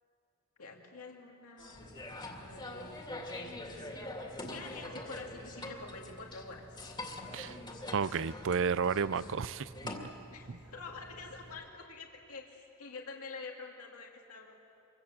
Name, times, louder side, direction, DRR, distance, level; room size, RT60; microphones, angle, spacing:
voice 1, 0.6-2.0 2.3-2.9 3.3-3.5 4.5-6.8 10.3-14.6, left 4 dB, 75° left, 0 dB, 2.6 m, -47 dB
sound 1, 1.6-10.0, left 2 dB, 20° left, 2.4 m, -44 dB
sound 2, 1.7-11.6, right 1 dB, 15° right, 1.7 m, -55 dB
voice 2, 7.9-9.9 10.5-10.6, right 6 dB, 60° right, 17 dB, 0.5 m, -32 dB
27.0 x 24.0 x 7.6 m, 2.7 s
head